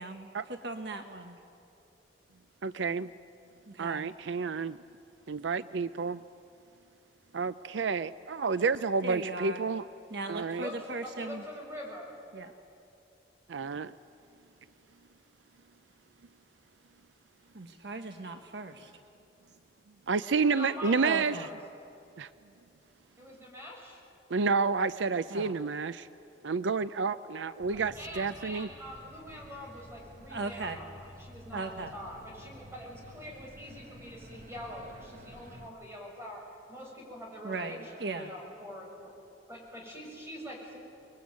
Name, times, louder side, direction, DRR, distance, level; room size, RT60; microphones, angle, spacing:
voice 1, 0.0-1.4 3.7-4.1 9.0-9.6 10.1-11.4 12.3-12.5 17.5-18.9 21.0-21.5 25.3-25.5 30.3-30.8 31.5-31.9 37.4-38.3, right 3 dB, 65° right, 6 dB, 1.2 m, -38 dB
voice 2, 2.6-3.1 3.8-4.8 5.3-6.2 7.3-9.8 10.3-10.6 13.5-13.9 20.1-21.4 22.2-22.3 24.3-26.1 26.4-28.7, right 4 dB, 85° right, 14 dB, 0.5 m, -30 dB
voice 3, 10.5-12.1 20.5-21.6 23.2-24.0 27.7-36.4 36.7-39.1 39.5-40.8, equal, 15° right, -1 dB, 7.0 m, -44 dB
sound 1, 27.6-35.7, equal, 45° right, 1.4 m, -51 dB
28.0 x 22.0 x 9.6 m, 2.6 s
head